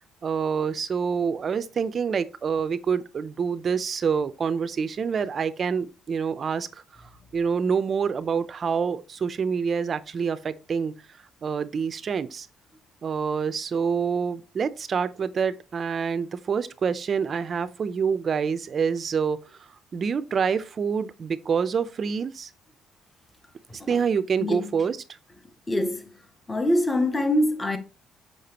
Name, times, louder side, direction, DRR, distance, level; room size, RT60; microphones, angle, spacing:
voice 1, 0.2-6.7 7.3-10.9 11.4-12.5 13.0-19.4 19.9-22.5 23.9-25.0, right 6 dB, 30° right, 0.5 m, -26 dB
voice 2, 24.4-24.8 25.7-26.1 26.5-27.8, left 1 dB, 10° left, 0.6 m, -24 dB
6.7 x 5.5 x 2.9 m
cardioid pair, 180°, 0 cm